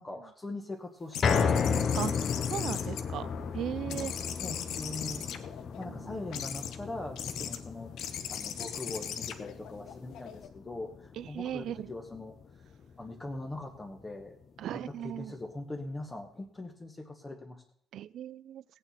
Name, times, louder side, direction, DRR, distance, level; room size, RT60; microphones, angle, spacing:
voice 1, 0.0-1.8 3.9-4.1 4.4-5.3 5.8-7.9 8.3-12.3 13.0-14.4 14.7-17.6, left 2 dB, 15° left, 3 dB, 1.2 m, -41 dB
sound 1, 1.1-3.6 3.9-5.8 6.3-6.8 7.2-7.6 8.0-10.5, left 9 dB, 70° left, 1.0 m, -39 dB
sound 2, 1.2-13.5 13.9-14.0 14.4-14.5, left 6 dB, 35° left, 0.7 m, -34 dB
voice 2, 2.5-4.1 5.8-6.2 11.1-11.9 14.6-15.4 17.9-18.6, right 11 dB, 60° right, 19 dB, 0.4 m, -37 dB
17.0 x 8.9 x 4.2 m, 0.66 s
cardioid pair, 165°, 0 cm